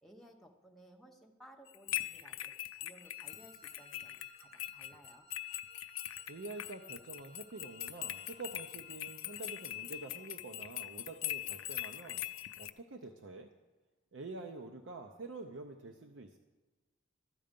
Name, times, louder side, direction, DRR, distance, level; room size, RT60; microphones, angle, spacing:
voice 1, 0.0-2.5 2.8-5.3, equal, ahead, 1 dB, 0.9 m, -59 dB
sound 1, 1.7-12.7, left 13 dB, 85° left, 0.4 m, -42 dB
Wind instrument woodwind instrument, 3.0-9.8, right 4 dB, 85° right, 1.2 m, -63 dB
voice 2, 6.3-12.2 12.6-13.5 14.1-16.4, right 3 dB, 65° right, 5 dB, 0.6 m, -47 dB
Bowed string instrument, 7.6-12.6, right 1 dB, 20° right, 1.6 m, -67 dB
13.0 x 7.6 x 5.2 m, 1.2 s
head